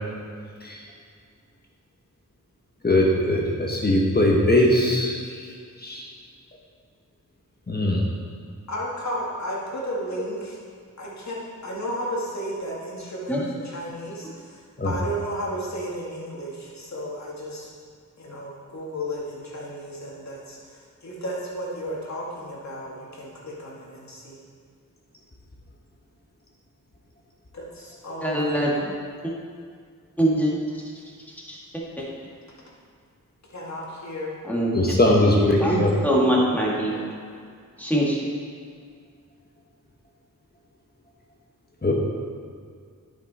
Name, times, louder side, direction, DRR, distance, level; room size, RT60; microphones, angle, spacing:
voice 1, 2.8-5.1 5.8-6.0 7.7-8.0 14.8-14.9 34.7-35.9 41.8-42.0, left 1 dB, 30° left, -2 dB, 1.2 m, -20 dB
voice 2, 8.7-10.6 11.0-17.7 18.2-24.4 27.5-28.9 33.5-34.4 36.8-37.1, equal, 55° left, -4 dB, 2.1 m, -33 dB
voice 3, 28.2-28.7 30.2-30.5 31.5-31.6 32.0-32.1 34.5-34.9 35.3-36.9 37.8-38.2, equal, 5° left, -5 dB, 2.0 m, -23 dB
10.5 x 5.8 x 4.3 m, 2.1 s
wide cardioid pair, 90°, 33 cm